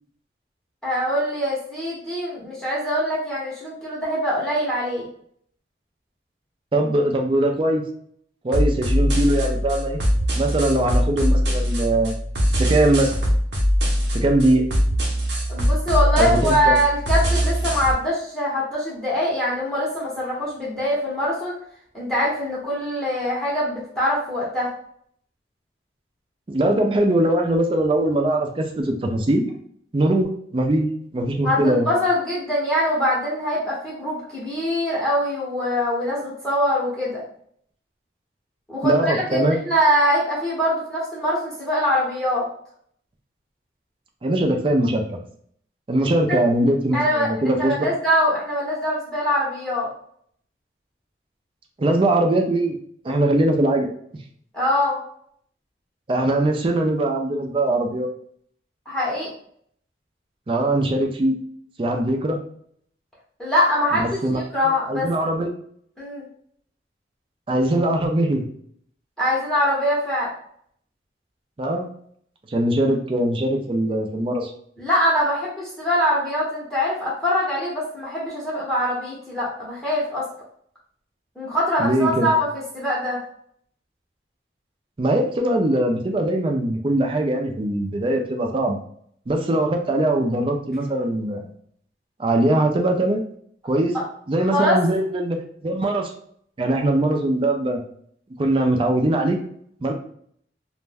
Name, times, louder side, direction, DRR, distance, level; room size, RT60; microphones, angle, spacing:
voice 1, 0.8-5.1 15.5-21.5 21.9-24.7 31.4-37.2 38.7-42.5 46.3-46.4 46.9-49.9 54.5-55.0 58.9-59.3 63.4-65.1 66.0-66.2 69.2-70.3 74.8-80.2 81.4-82.4 82.7-83.2 93.9-94.0 94.5-94.8, equal, 5° left, -6 dB, 0.8 m, -23 dB
voice 2, 6.7-7.8 8.4-10.0 10.4-12.1 12.6-13.1 14.1-14.6 16.2-16.8 26.5-29.4 29.9-30.9 31.1-31.9 38.8-39.6 44.2-45.2 45.9-47.9 51.8-52.8 53.0-53.9 56.1-58.1 60.5-61.4 61.8-62.4 63.9-64.4 64.9-65.5 67.5-68.4 71.6-71.9 72.5-74.5 81.8-82.3 85.0-88.8 89.3-91.5 92.2-93.2 93.6-94.0 94.3-95.4 95.6-96.1 96.6-97.8 98.4-99.4 99.8-99.9, right 1 dB, 30° right, 3 dB, 0.4 m, -21 dB
sound 1, 8.5-17.9, equal, 80° right, 0.8 m, -22 dB
2.5 x 2.1 x 3.3 m, 0.63 s
head